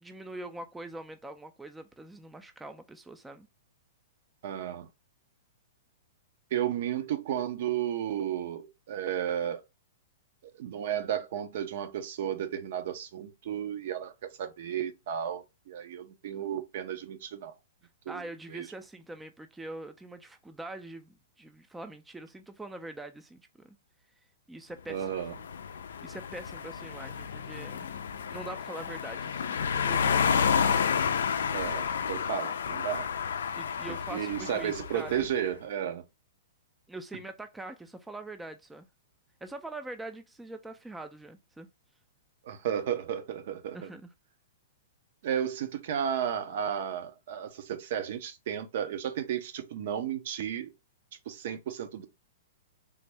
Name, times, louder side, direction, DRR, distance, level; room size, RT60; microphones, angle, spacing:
voice 1, 0.0-3.5 18.1-23.7 24.5-25.1 26.0-27.9 28.3-30.5 33.5-35.3 36.9-38.9 39.4-41.7 43.7-44.1, right 2 dB, 5° right, 0.3 m, -43 dB
voice 2, 4.4-4.9 6.5-9.6 10.6-17.5 18.1-18.2 18.5-18.7 24.9-25.3 31.5-33.1 33.9-36.0 42.4-43.9 45.2-50.7 51.3-52.1, right 9 dB, 60° right, 0.5 m, -33 dB
sound 1, 25.0-35.3, left 7 dB, 75° left, 0.3 m, -30 dB
3.3 x 2.0 x 3.3 m
hypercardioid pair, 120°, 0 cm